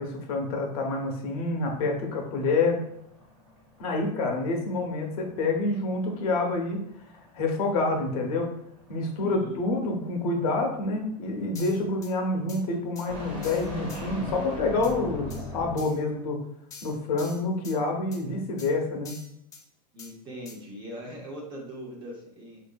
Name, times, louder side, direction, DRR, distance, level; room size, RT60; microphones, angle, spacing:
voice 1, 0.0-2.8 3.8-6.8 7.3-8.5 8.9-16.4 16.8-19.1, left 3 dB, 55° left, 1 dB, 0.8 m, -27 dB
sound 1, 1.5-16.1, left 2 dB, 5° right, 1.1 m, -42 dB
voice 2, 9.1-9.8 19.9-22.6, equal, 20° right, -2 dB, 0.7 m, -41 dB
sound 2, 11.5-12.1 12.5-12.6 13.0-13.1 13.4-14.0 14.8-14.9 15.3-15.4 15.8-16.0 16.7-17.8 18.1-18.2 18.6-18.7 19.0-19.6 20.0-20.1 20.5-20.6, left 5 dB, 15° left, 0.4 m, -46 dB
4.6 x 2.6 x 2.2 m, 0.72 s
supercardioid pair, 150°, 21 cm